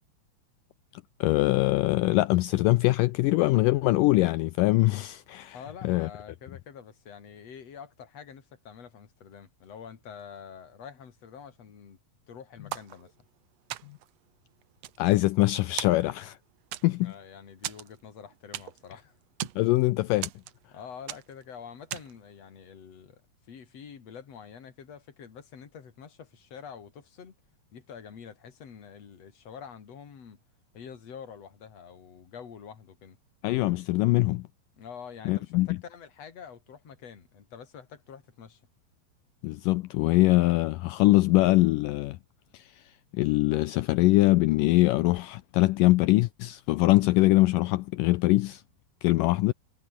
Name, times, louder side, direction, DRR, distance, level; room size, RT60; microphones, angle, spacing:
voice 1, 1.2-5.6 5.8-6.1 15.0-16.4 16.8-17.1 19.6-20.3 33.4-34.5 35.3-35.8 39.4-42.2 42.5-42.6 43.1-48.6 49.0-49.5, left 19 dB, 85° left, 1.9 m, -23 dB
voice 2, 5.5-12.0 12.3-13.1 17.0-19.2 20.7-27.4 27.7-30.4 30.7-33.2 34.8-38.6, left 7 dB, 45° left, 3.7 m, -46 dB
sound 1, 12.7-13.4 13.7-14.2 14.6-15.5 15.8-16.3 16.7-17.2 17.6-18.9 19.2-19.7 20.2-20.8 21.1-21.4 21.9-22.3, right 13 dB, 85° right, 1.4 m, -38 dB
omnidirectional pair, 4.5 m